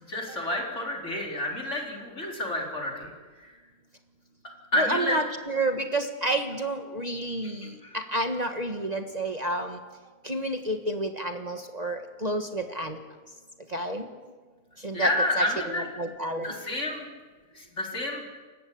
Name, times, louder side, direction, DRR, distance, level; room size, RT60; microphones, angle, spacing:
voice 1, 0.1-3.1 3.4-3.5 4.7-5.2 7.8-7.9 14.9-15.9 16.3-17.1 17.5-18.3, left 1 dB, 55° left, -1 dB, 4.7 m, -29 dB
voice 2, 4.7-9.8 10.2-13.0 13.7-14.1 14.8-15.1 15.4-15.5 16.0-16.5, right 1 dB, 30° right, 5 dB, 1.6 m, -30 dB
29.0 x 15.5 x 8.7 m, 1.4 s
omnidirectional pair, 1.5 m